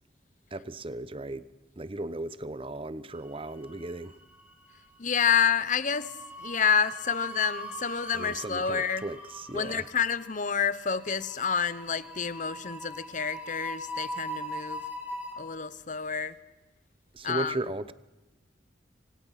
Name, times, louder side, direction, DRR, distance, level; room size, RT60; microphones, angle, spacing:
voice 1, 0.5-1.4 1.8-4.2 8.1-9.9 17.1-17.9, right 2 dB, 30° right, 0.9 m, -36 dB
sound 1, 3.3-4.1 4.3-4.6 5.8-15.3, equal, 10° right, 4.9 m, -41 dB
voice 2, 5.0-6.1 6.4-9.0 9.5-14.8 15.4-16.3 17.2-17.6, left 7 dB, 40° left, 1.0 m, -28 dB
27.0 x 26.0 x 5.9 m
head